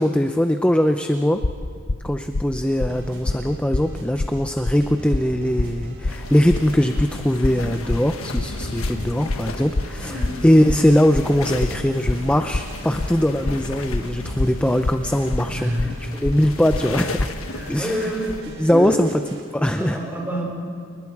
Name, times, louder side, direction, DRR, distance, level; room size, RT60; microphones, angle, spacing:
voice 1, 0.0-1.4 2.0-10.2 10.4-15.7 16.0-17.2 17.7-18.1 18.6-19.1 19.5-20.0, equal, 5° left, 7 dB, 0.6 m, -20 dB
sound 1, 1.4-17.3, left 2 dB, 60° left, 0.8 m, -26 dB
sound 2, 2.8-19.4, equal, 65° right, 4.2 m, -40 dB
sound 3, 6.1-18.4, left 3 dB, 85° left, 1.4 m, -35 dB
voice 2, 10.0-10.3 15.5-16.0 17.5-18.3 18.7-19.0 19.7-20.5, equal, 10° right, -2 dB, 5.1 m, -27 dB
29.0 x 20.0 x 4.8 m, 2.4 s
head